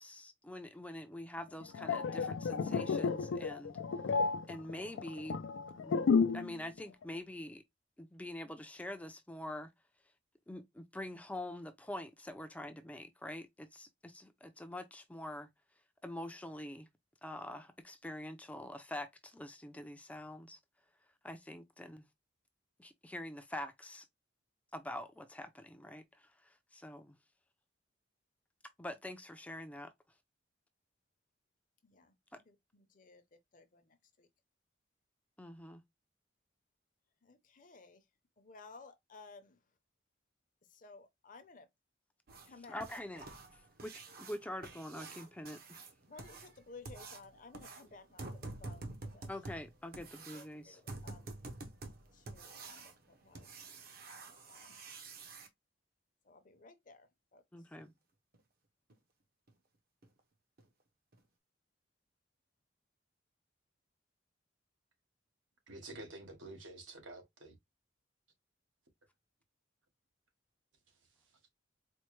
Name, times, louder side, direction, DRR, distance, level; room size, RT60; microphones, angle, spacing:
voice 1, 0.0-3.8 4.5-5.4 5.8-5.9 6.3-7.6 8.0-9.7 10.5-15.5 16.0-16.9 17.2-20.6 21.2-22.0 22.8-24.1 24.7-26.3 26.7-27.1 28.8-29.9 35.4-35.8 42.7-43.3 43.8-43.9 44.2-45.6 49.3-50.8 57.5-57.9, left 1 dB, 5° left, 0.4 m, -45 dB
sound 1, 1.6-6.5 6.8-7.0, left 5 dB, 90° left, 0.4 m, -32 dB
voice 2, 37.3-38.0 38.4-39.5 40.8-41.6 42.5-42.8 46.1-48.3 48.6-48.8 49.1-49.3 50.3-51.2 52.3-52.8 53.2-53.4 54.5-54.6 56.3-57.1 57.3-57.4, left 3 dB, 45° left, 0.6 m, -55 dB
sound 2, 42.3-55.5 57.8-57.9 58.3-58.4 58.9-59.0 59.5-59.6 60.0-60.2 60.6-60.7 61.1-61.2, right 3 dB, 50° right, 0.7 m, -49 dB
voice 3, 65.7-67.5, right 2 dB, 90° right, 1.2 m, -49 dB
4.4 x 2.1 x 3.0 m
head